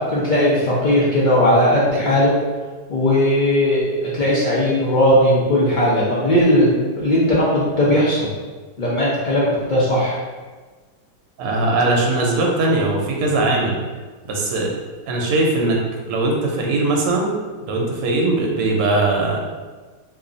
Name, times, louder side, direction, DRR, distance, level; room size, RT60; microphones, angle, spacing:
voice 1, 0.0-2.3 2.9-8.3 8.8-10.2, left 1 dB, 70° left, -7 dB, 0.4 m, -17 dB
voice 2, 11.4-13.8 14.3-14.7 15.1-15.8 16.1-17.3 17.7-19.4, right 2 dB, 75° right, 0 dB, 1.2 m, -20 dB
3.0 x 2.4 x 3.8 m, 1.4 s
omnidirectional pair, 1.8 m